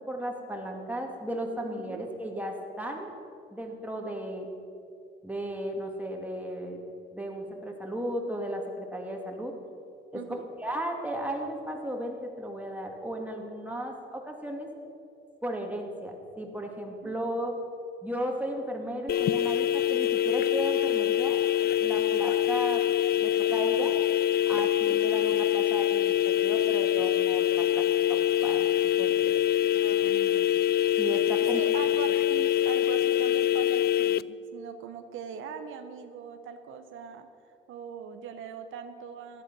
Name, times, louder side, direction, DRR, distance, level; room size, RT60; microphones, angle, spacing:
voice 1, 0.1-3.1 3.5-4.5 5.2-6.8 7.1-9.5 10.1-10.2 10.6-14.7 15.4-17.6 18.0-21.4 21.8-22.8 23.2-23.9 24.5-28.7 29.0-29.3 31.0-31.6, right 1 dB, 5° right, 1 dB, 2.4 m, -35 dB
voice 2, 1.6-2.0 10.1-10.4 17.0-17.2 29.7-30.6 31.5-37.3 37.7-39.4, right 7 dB, 85° right, 7 dB, 1.0 m, -41 dB
sound 1, 19.1-34.2, left 11 dB, 50° left, 0.4 m, -25 dB
14.5 x 11.5 x 6.3 m, 2.7 s
cardioid pair, 90°, 20 cm